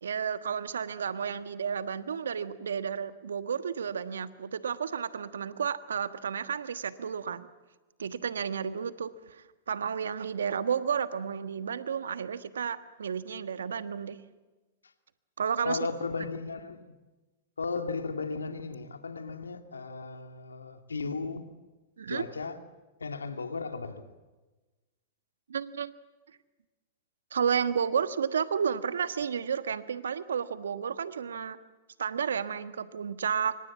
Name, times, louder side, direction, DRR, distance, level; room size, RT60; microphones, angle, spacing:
voice 1, 0.0-7.5 8.0-14.2 15.4-15.8 22.0-22.2 25.5-26.0 27.3-31.6 32.0-33.6, right 7 dB, 80° right, 1.4 m, -32 dB
voice 2, 15.6-16.9 17.6-21.5 22.1-22.6 23.0-24.1, left 4 dB, 90° left, 2.2 m, -35 dB
27.0 x 24.5 x 7.3 m
hypercardioid pair, 105°, 0 cm